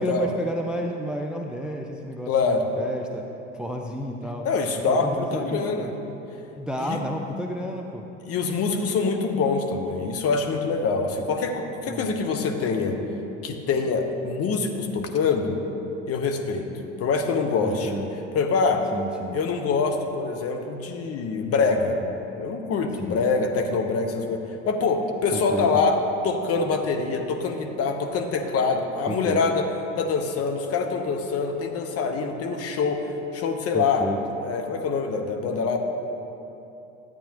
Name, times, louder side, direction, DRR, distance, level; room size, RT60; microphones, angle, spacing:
voice 1, 0.0-3.2 3.5-4.5 4.9-5.9 6.5-8.0 11.9-12.2 13.1-13.3 17.6-18.1 18.9-19.4 23.0-23.2 25.3-25.7 29.1-29.4 33.7-34.2, right 1 dB, ahead, 2 dB, 0.4 m, -31 dB
voice 2, 2.3-2.6 4.4-5.9 6.8-7.0 8.3-13.0 13.4-15.6 16.1-16.6 17.0-18.0 18.3-18.8 19.3-22.0 22.4-24.4 24.7-29.7 30.0-34.1 34.4-35.8, left 4 dB, 40° left, 5 dB, 1.0 m, -25 dB
12.0 x 8.6 x 2.9 m, 2.9 s
hypercardioid pair, 75°, 37 cm